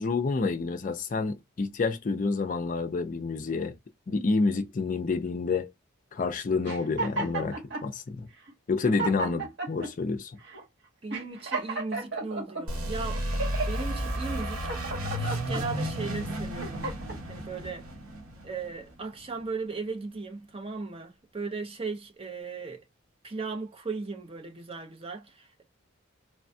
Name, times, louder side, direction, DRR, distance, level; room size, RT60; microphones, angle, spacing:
voice 1, 0.0-3.7 4.1-5.7 6.1-8.3 8.7-10.4, left 4 dB, 40° left, 0.4 m, -29 dB
sound 1, 6.6-7.9 8.5-8.6 8.8-9.9 10.5-10.6 11.1-12.6 13.1-13.8 14.3-15.6 16.2-17.2, right 3 dB, 55° right, 1.0 m, -34 dB
voice 2, 11.0-13.2 13.7-14.7 15.2-16.9 17.2-17.9 18.4-22.8 23.2-25.6, right 4 dB, 25° right, 0.5 m, -37 dB
sound 2, 12.7-19.3, equal, 85° right, 0.9 m, -33 dB
3.1 x 2.2 x 2.6 m
head